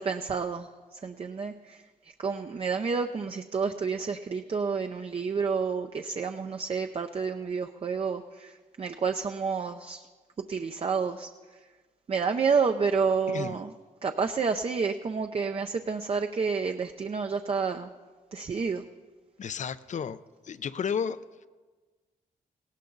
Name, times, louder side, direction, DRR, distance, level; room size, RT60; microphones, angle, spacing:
voice 1, 0.0-10.0 10.5-11.3 12.1-13.7 14.0-17.9 18.3-18.8, right 5 dB, 40° right, 5 dB, 0.6 m, -29 dB
voice 2, 19.4-20.2 20.4-21.2, left 7 dB, 50° left, 14 dB, 0.6 m, -32 dB
19.0 x 17.0 x 4.0 m, 1.3 s
cardioid pair, 105°, 15 cm